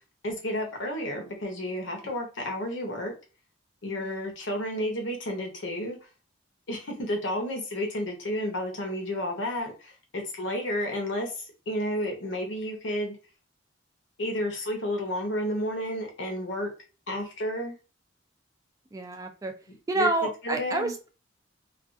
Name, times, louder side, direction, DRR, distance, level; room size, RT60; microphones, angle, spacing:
voice 1, 0.2-3.1 3.8-6.0 6.7-13.2 14.2-16.7 17.1-17.7 20.0-20.1 20.4-20.9, equal, 75° left, 2 dB, 0.8 m, -31 dB
voice 2, 4.0-4.3 18.9-19.5 19.9-21.1, right 2 dB, 20° right, 4 dB, 0.3 m, -29 dB
2.4 x 2.3 x 2.4 m, 0.33 s
head